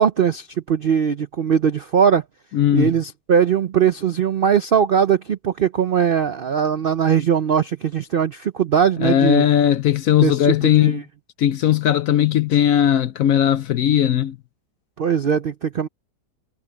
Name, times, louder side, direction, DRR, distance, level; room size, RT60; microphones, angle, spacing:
voice 1, 0.0-2.2 2.7-9.4 10.2-11.0 15.0-15.9, right 7 dB, 75° right, 0.5 m, -20 dB
voice 2, 2.5-2.9 9.0-11.0 11.4-14.4, left 11 dB, 65° left, 0.9 m, -18 dB
omnidirectional pair, 1.8 m